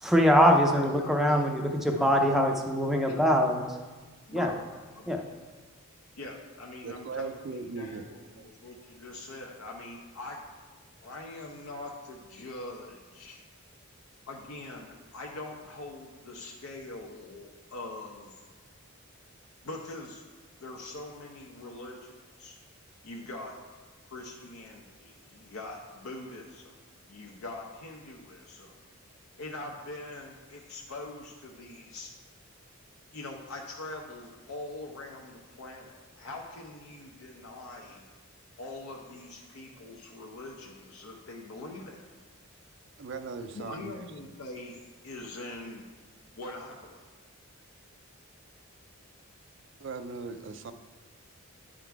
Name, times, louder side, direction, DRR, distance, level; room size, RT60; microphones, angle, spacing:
voice 1, 0.0-3.6 4.3-4.5 5.1-5.2, equal, ahead, 0.5 m, -23 dB
voice 2, 0.7-1.6 1.9-3.4 4.3-4.6 4.9-5.2 6.2-10.4 11.0-13.4 14.3-18.4 19.6-20.2 20.6-22.1 22.4-22.6 23.0-23.5 24.1-28.7 29.4-32.1 33.1-38.1 38.6-42.1 43.5-45.9 46.4-47.0, left 2 dB, 80° left, 0.7 m, -43 dB
voice 3, 6.8-8.1 8.4-8.5 43.0-44.0 49.8-50.7, right 4 dB, 55° right, 0.4 m, -38 dB
10.0 x 3.9 x 4.6 m
head